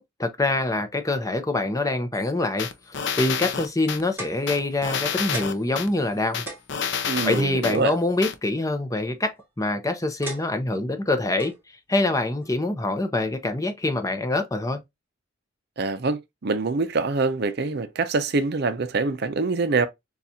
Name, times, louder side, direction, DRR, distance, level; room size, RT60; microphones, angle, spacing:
voice 1, 0.0-2.7 3.2-6.4 7.2-11.5 11.9-14.8, left 2 dB, 15° left, 0.6 m, -25 dB
sound 1, 2.6-4.0 4.5-5.9 6.3-7.8 8.2-8.3, left 7 dB, 60° left, 0.6 m, -28 dB
sound 2, 4.2-4.9 5.3-5.8 6.1-6.2 6.5-8.0 9.1-9.5 10.2-10.8 11.4-11.6 12.4-12.5, right 2 dB, 10° right, 1.8 m, -38 dB
voice 2, 7.1-7.9 15.8-19.9, right 3 dB, 55° right, 0.5 m, -25 dB
6.9 x 2.4 x 2.7 m
head